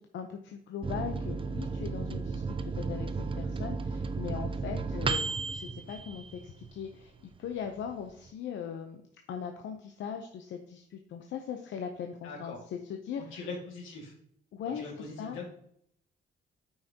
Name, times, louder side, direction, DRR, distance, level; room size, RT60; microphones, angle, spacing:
voice 1, 0.0-2.6 2.9-7.1 7.4-9.0 9.3-13.4 14.5-14.8 15.2-15.5, left 7 dB, 70° left, 5 dB, 0.7 m, -39 dB
Microwave oven, 0.8-6.9 7.3-7.4 7.7-8.3, right 4 dB, 25° right, 0.5 m, -34 dB
voice 2, 12.2-12.6 13.3-14.1 14.8-15.5, left 3 dB, 85° left, 0 dB, 2.2 m, -41 dB
8.8 x 5.6 x 2.9 m, 0.68 s
cardioid pair, 90°, 20 cm